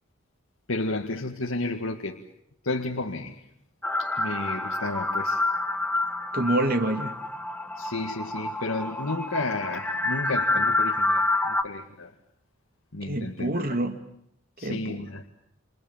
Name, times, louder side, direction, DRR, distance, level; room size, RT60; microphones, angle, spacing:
voice 1, 0.7-2.2 2.6-3.4 4.0-5.5 7.8-12.1 12.9-13.5 14.6-15.2, left 2 dB, 85° left, 2 dB, 1.9 m, -32 dB
sound 1, 3.8-11.6, left 2 dB, 10° left, 1.5 m, -28 dB
voice 2, 6.3-7.2 13.0-14.0 14.6-15.1, right 1 dB, 45° right, 7 dB, 2.7 m, -27 dB
29.5 x 28.0 x 7.3 m, 0.72 s
head